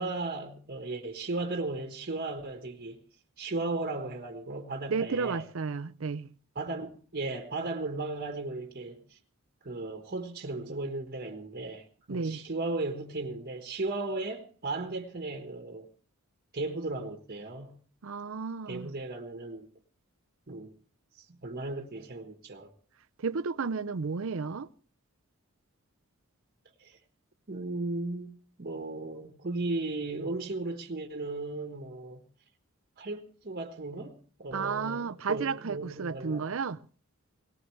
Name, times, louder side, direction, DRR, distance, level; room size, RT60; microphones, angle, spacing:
voice 1, 0.0-3.0 3.4-5.4 6.5-9.2 9.6-15.9 16.5-17.8 18.7-19.7 20.5-20.7 21.4-22.7 26.8-27.0 27.5-28.3 28.6-32.2 33.0-36.5, right 2 dB, 45° right, 1.4 m, -36 dB
voice 2, 4.9-6.3 12.1-12.4 18.0-18.9 23.2-24.7 34.5-36.8, right 5 dB, 70° right, 0.6 m, -32 dB
18.5 x 18.0 x 3.2 m
head